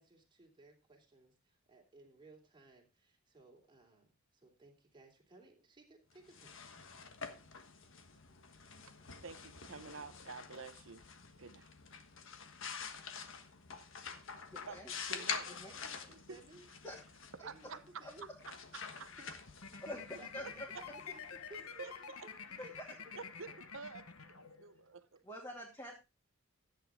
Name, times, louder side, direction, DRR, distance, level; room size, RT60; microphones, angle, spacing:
voice 1, 0.0-6.6 15.1-16.7 17.4-18.3 19.2-19.3 19.7-22.8, right 2 dB, 20° right, 3.0 m, -59 dB
sound 1, 6.1-21.8, left 6 dB, 60° left, 1.3 m, -47 dB
voice 2, 9.2-11.1 11.4-11.7 14.7-14.8 15.1-15.5 16.3-16.4 17.4-17.8 18.5-19.1 20.4-20.8 21.8-22.3 23.1-25.2, right 4 dB, 65° right, 0.9 m, -49 dB
voice 3, 14.5-14.9 15.5-15.7 16.8-17.0 18.0-18.1 19.9-20.0 20.3-20.7 22.6-22.9 25.2-26.1, left 1 dB, 15° left, 2.5 m, -46 dB
sound 2, 19.6-24.8, left 6 dB, 85° left, 1.3 m, -49 dB
14.0 x 9.0 x 3.7 m
head